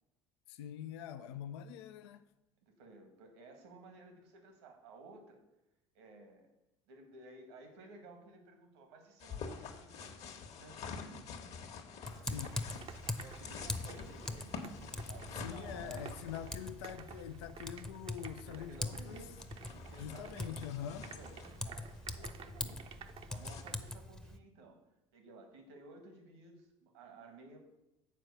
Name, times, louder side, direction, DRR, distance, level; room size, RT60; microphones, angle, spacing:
voice 1, 0.5-2.2 12.2-12.6 15.4-19.3 20.0-21.1, left 10 dB, 75° left, 0.5 m, -44 dB
voice 2, 2.6-5.4 5.9-6.5 6.9-11.4 13.2-14.7 15.0-16.1 18.4-19.4 19.9-22.9 23.3-24.8 25.1-27.6, right 2 dB, 75° right, 1.5 m, -55 dB
sound 1, 9.2-23.6, left 5 dB, 50° left, 1.2 m, -49 dB
Typing, 12.0-24.4, left 1 dB, 5° left, 0.7 m, -44 dB
sound 2, 12.1-23.9, right 7 dB, 40° right, 0.7 m, -54 dB
7.5 x 4.5 x 6.6 m
hypercardioid pair, 70°, 14 cm